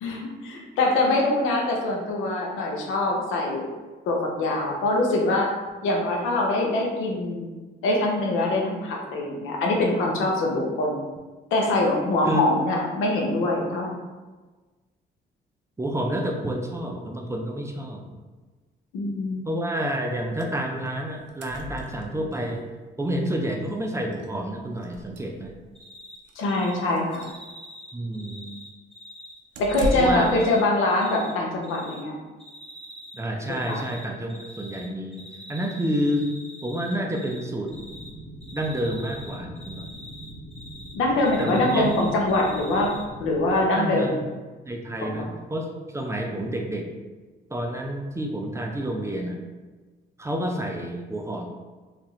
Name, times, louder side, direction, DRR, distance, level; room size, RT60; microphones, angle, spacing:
voice 1, 0.0-3.6 4.1-5.5 5.8-7.5 7.8-11.0 11.5-13.9 18.9-19.5 26.4-27.2 29.6-32.1 33.5-33.8 40.9-42.9 43.2-44.2 45.0-45.1, left 2 dB, 90° left, 0 dB, 0.6 m, -24 dB
voice 2, 15.8-18.0 19.4-22.7 23.0-25.5 27.9-28.5 29.9-30.4 33.1-36.3 36.6-37.7 38.5-39.9 41.4-41.9 43.7-44.2 44.6-46.9 47.5-49.4 50.2-51.5, right 1 dB, 15° right, 1 dB, 0.4 m, -29 dB
sound 1, 20.4-20.6 20.9-21.0 21.1-22.4 23.7-23.8 24.1-24.3 24.8-25.7 26.2-26.4 26.9-27.4 29.5-30.4, right 1 dB, 70° right, 0.5 m, -34 dB
Cricket, 25.7-26.2 26.4-26.7 27.1-29.3 29.6-31.3 31.6-32.0 32.4-33.2 33.5-34.9 35.1-37.4 37.7-38.1 38.4-40.9 41.2-43.0, left 1 dB, 5° left, 0.8 m, -44 dB
sound 2, 37.7-43.6, right 1 dB, 50° left, 0.8 m, -42 dB
2.7 x 2.4 x 3.1 m, 1.3 s
cardioid pair, 90°, 20 cm